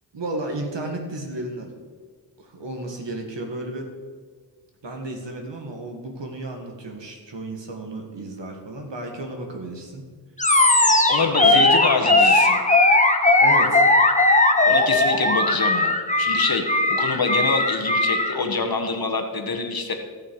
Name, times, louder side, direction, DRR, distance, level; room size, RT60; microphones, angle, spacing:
voice 1, 0.1-1.7 2.4-3.9 4.8-10.1 13.4-13.9, right 2 dB, 85° right, 2 dB, 1.8 m, -33 dB
Animal, 10.4-18.4, left 2 dB, 15° left, 1.1 m, -18 dB
voice 2, 11.1-12.6 14.6-16.6 16.9-19.9, left 4 dB, 55° left, 5 dB, 1.4 m, -25 dB
16.5 x 5.9 x 4.7 m, 1.5 s
wide cardioid pair, 50°, 42 cm